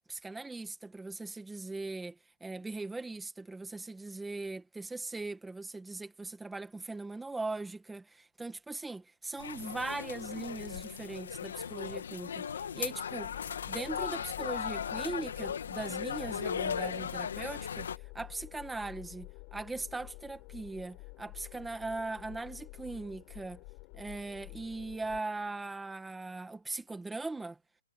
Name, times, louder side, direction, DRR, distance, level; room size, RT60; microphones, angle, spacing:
voice 1, 0.1-13.3 13.7-17.9 18.1-23.6 23.9-27.6, right 3 dB, 5° right, 1.4 m, -40 dB
sound 1, 9.4-18.0, left 7 dB, 65° left, 1.8 m, -37 dB
sound 2, 13.2-25.2, left 29 dB, 20° left, 4.1 m, -50 dB
hypercardioid pair, 180°, 0 cm